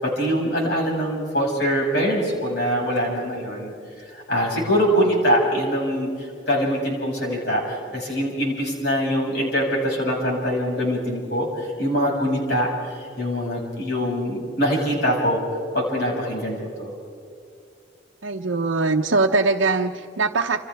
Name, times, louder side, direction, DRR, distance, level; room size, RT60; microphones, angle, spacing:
voice 1, 0.0-3.7 4.1-15.4 15.7-16.9, equal, 60° left, -2 dB, 6.5 m, -23 dB
voice 2, 18.2-20.6, right 3 dB, 90° right, 0 dB, 0.9 m, -21 dB
28.5 x 27.5 x 3.6 m, 2.4 s
head